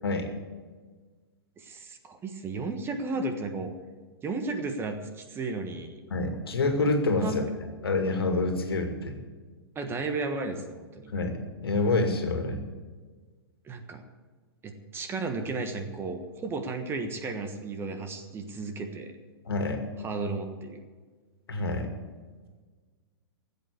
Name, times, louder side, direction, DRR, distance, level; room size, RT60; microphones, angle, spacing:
voice 1, 1.6-3.7 4.2-6.0 6.4-6.5 7.2-7.5 9.7-11.1 13.6-14.0 14.6-19.1 20.0-20.8, right 3 dB, 20° right, 6 dB, 1.4 m, -34 dB
voice 2, 6.1-7.4 7.8-9.1 11.1-12.6 19.5-19.8 21.5-21.9, left 3 dB, 70° left, 5 dB, 2.2 m, -27 dB
15.5 x 8.5 x 8.3 m, 1.4 s
figure-of-eight pair, 110°, 13 cm